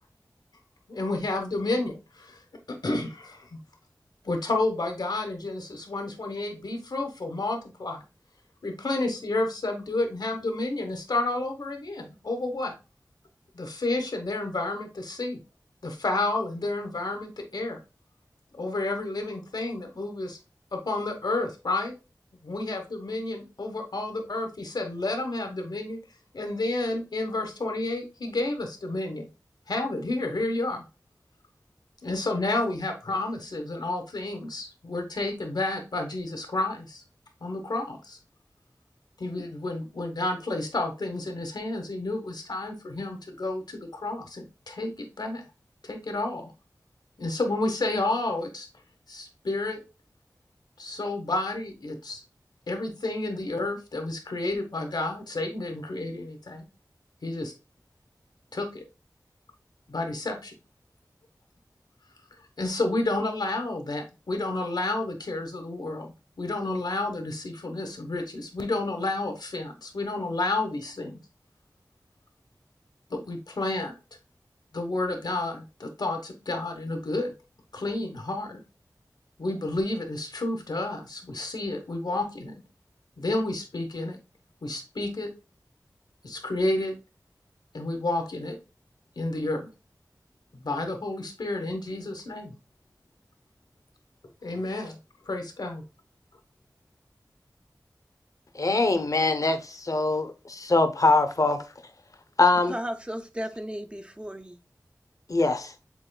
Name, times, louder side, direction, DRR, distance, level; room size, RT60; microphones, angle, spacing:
voice 1, 0.9-2.4 2.7-3.6 4.2-8.0 8.6-12.7 13.5-15.4 15.8-17.8 18.6-20.4 20.7-21.9 22.4-26.0 26.3-29.3 29.7-30.8 32.0-37.0 37.4-38.2 39.2-45.4 45.8-46.5 47.2-48.7 49.1-49.8 50.8-52.2 52.7-56.6 57.2-57.5 58.5-58.8 59.9-60.5 62.6-71.2 73.1-73.9 74.7-77.3 77.7-78.6 79.4-82.5 83.2-84.2 84.6-85.3 86.2-86.9 87.7-88.6 89.2-89.7 90.5-92.5 94.4-95.0 95.3-95.8, left 2 dB, 85° left, 1.1 m, -30 dB
voice 2, 98.5-101.6 102.4-102.7 105.3-105.7, left 3 dB, 55° left, 0.7 m, -23 dB
voice 3, 102.7-104.6 105.4-105.6, equal, 15° right, 0.5 m, -35 dB
7.3 x 3.0 x 2.2 m
wide cardioid pair, 70°, 7 cm